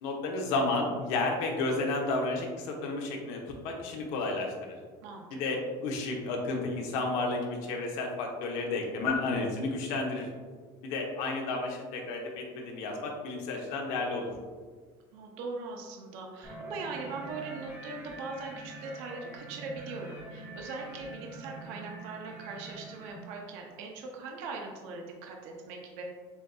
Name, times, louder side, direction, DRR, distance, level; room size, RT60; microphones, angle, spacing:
voice 1, 0.0-4.7 5.3-5.6 5.8-10.3 10.8-14.3, left 3 dB, 60° left, 1 dB, 0.8 m, -32 dB
voice 2, 5.0-5.6 15.1-26.0, right 3 dB, 60° right, 1 dB, 0.6 m, -41 dB
sound 1, 16.4-23.1, right 2 dB, 15° right, 0.8 m, -45 dB
7.0 x 2.6 x 2.3 m, 1.5 s
cardioid pair, 175°, 13 cm